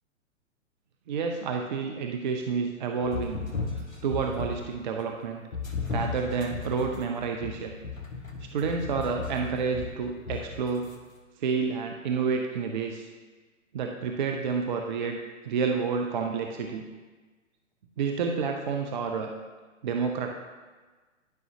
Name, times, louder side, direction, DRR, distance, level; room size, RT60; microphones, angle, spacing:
voice 1, 1.1-3.4 4.0-5.4 5.9-7.7 8.5-10.9 11.4-13.1 13.7-15.2 15.4-16.8 18.0-19.3 19.8-20.3, right 5 dB, 35° right, 3 dB, 0.5 m, -29 dB
sound 1, 3.0-4.8 5.5-10.9, left 4 dB, 80° left, 1.3 m, -35 dB
11.5 x 5.4 x 2.8 m, 1.3 s
figure-of-eight pair, 120°, 40 cm